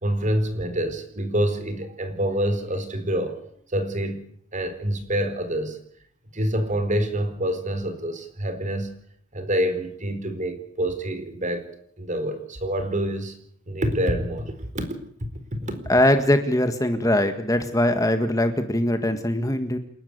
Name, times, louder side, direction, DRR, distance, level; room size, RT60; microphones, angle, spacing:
voice 1, 0.0-3.4 3.7-4.3 4.5-5.8 6.3-9.0 9.3-11.7 12.0-13.4 13.7-14.9 15.5-15.8, equal, 35° right, 9 dB, 4.2 m, -26 dB
voice 2, 15.9-19.8, left 1 dB, 15° left, 8 dB, 1.8 m, -21 dB
29.5 x 12.0 x 9.6 m, 0.67 s
head